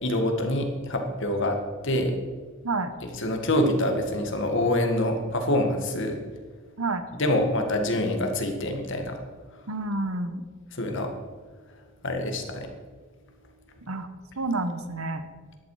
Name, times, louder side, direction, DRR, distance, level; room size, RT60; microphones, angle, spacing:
voice 1, 0.0-2.1 3.1-6.2 7.2-9.2 10.7-11.1 12.0-12.7, left 1 dB, 60° left, 4 dB, 1.9 m, -26 dB
voice 2, 9.7-10.4 13.9-14.1 14.4-15.3, right 2 dB, 90° right, 10 dB, 1.2 m, -29 dB
13.5 x 10.5 x 4.9 m, 1.4 s
head